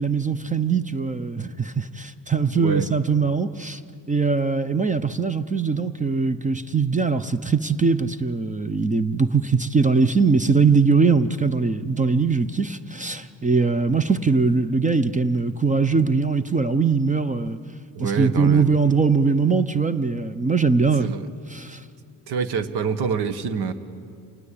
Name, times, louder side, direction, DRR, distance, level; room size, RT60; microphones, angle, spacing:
voice 1, 0.0-3.8 4.1-17.6 18.0-21.2 21.5-21.8, right 4 dB, 20° right, 13 dB, 0.7 m, -21 dB
voice 2, 2.5-2.9 17.9-18.7 21.0-21.3 22.3-23.7, right 6 dB, 65° right, 12 dB, 1.6 m, -26 dB
28.0 x 19.5 x 8.6 m, 2.4 s
cardioid pair, 100°, 42 cm